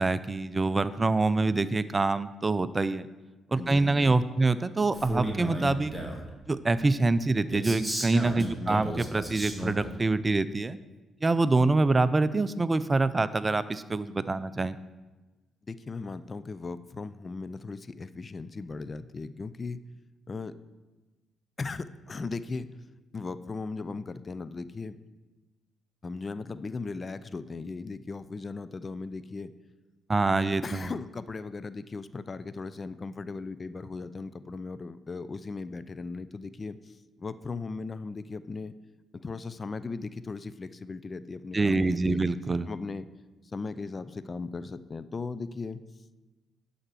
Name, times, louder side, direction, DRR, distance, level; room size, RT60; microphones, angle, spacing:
voice 1, 0.0-3.1 3.5-5.9 6.5-10.8 11.2-14.8 30.1-30.9 41.5-42.7, right 3 dB, 30° right, 15 dB, 0.5 m, -25 dB
voice 2, 3.6-4.3 8.3-8.9 15.6-19.8 20.3-20.5 21.6-22.7 23.1-25.0 26.0-29.5 30.6-38.8 39.1-42.2 42.7-43.1 43.4-45.8, left 4 dB, 40° left, 14 dB, 0.5 m, -37 dB
Male speech man speaking, 4.9-6.3 7.5-9.9, equal, 10° right, 2.1 m, -34 dB
11.0 x 4.3 x 6.2 m, 1.2 s
hypercardioid pair, 45°, 0 cm